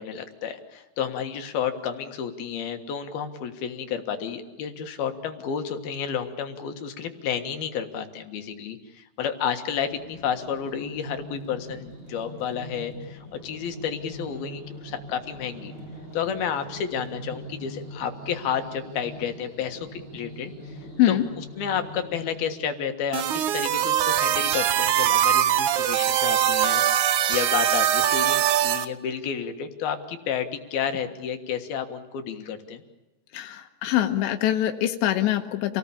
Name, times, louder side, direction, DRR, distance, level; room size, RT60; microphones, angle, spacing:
voice 1, 0.0-15.7 16.1-20.8 21.1-32.8, left 7 dB, 65° left, 7 dB, 3.3 m, -31 dB
sound 1, 9.9-22.5, right 1 dB, 20° right, 6.8 m, -42 dB
sound 2, 23.1-28.8, right 11 dB, 80° right, 1.8 m, -22 dB
voice 2, 33.3-35.8, left 12 dB, 85° left, 4 dB, 3.4 m, -23 dB
28.5 x 19.0 x 8.8 m, 1.1 s
omnidirectional pair, 5.0 m